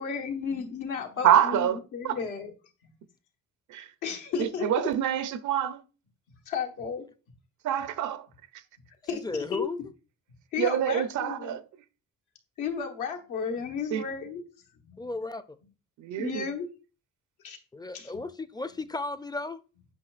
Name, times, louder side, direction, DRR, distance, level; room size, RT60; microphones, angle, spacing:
voice 1, 0.0-2.5 2.8-2.9 4.0-4.9 6.5-7.0 9.0-9.2 9.5-9.7 10.5-11.6 12.6-14.4 14.8-15.1 16.2-16.7 17.4-17.6 17.9-18.2, left 6 dB, 85° left, 1.3 m, -33 dB
voice 2, 1.2-2.2 3.7-3.9 4.4-5.8 7.6-8.3 10.6-11.6 13.9-14.0 16.0-16.5, right 10 dB, 75° right, 0.6 m, -26 dB
voice 3, 9.2-9.8 15.0-15.6 17.7-19.6, left 3 dB, 15° left, 0.4 m, -34 dB
8.5 x 5.0 x 2.5 m
cardioid pair, 90°, 30 cm